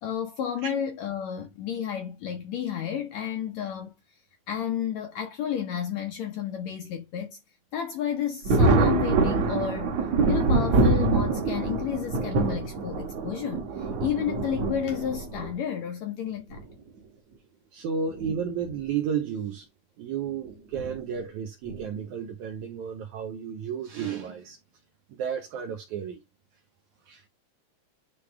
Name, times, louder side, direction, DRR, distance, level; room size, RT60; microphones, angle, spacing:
voice 1, 0.0-3.9 4.5-7.4 7.7-10.0 10.3-16.7, left 9 dB, 75° left, 1.6 m, -31 dB
Thunder, 8.4-15.5 16.5-16.6 18.1-18.3 18.7-18.8 20.7-21.0 21.7-22.0, right 3 dB, 60° right, 2.2 m, -25 dB
voice 2, 17.7-19.7 20.0-24.6 25.1-26.2 27.1-27.2, right 7 dB, 75° right, 1.8 m, -32 dB
9.8 x 3.5 x 3.4 m
omnidirectional pair, 4.2 m